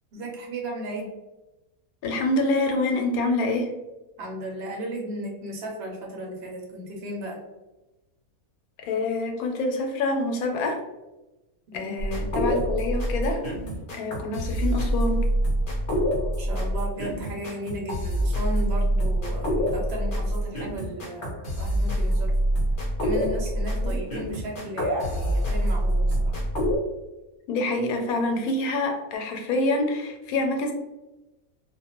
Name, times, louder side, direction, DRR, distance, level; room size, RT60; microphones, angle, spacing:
voice 1, 0.1-1.1 4.2-7.4 11.7-11.9 16.4-22.3 23.0-26.4, right 1 dB, 55° right, -1 dB, 0.8 m, -35 dB
voice 2, 2.0-3.7 8.8-10.8 11.7-13.4 13.9-15.2 23.8-24.0 27.5-30.7, left 2 dB, 80° left, 3 dB, 1.0 m, -26 dB
sound 1, 12.0-26.8, equal, 45° left, 0.7 m, -26 dB
2.4 x 2.2 x 2.8 m, 1.0 s
omnidirectional pair, 1.5 m